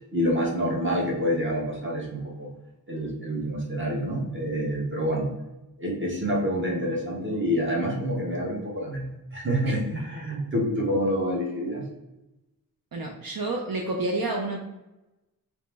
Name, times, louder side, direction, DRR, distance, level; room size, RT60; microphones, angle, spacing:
voice 1, 0.1-2.5 2.9-5.3 5.8-11.8, equal, 35° right, -2 dB, 1.3 m, -27 dB
voice 2, 12.9-14.6, right 2 dB, 70° right, 1 dB, 0.6 m, -29 dB
3.0 x 3.0 x 3.4 m, 0.98 s
cardioid pair, 50°, 36 cm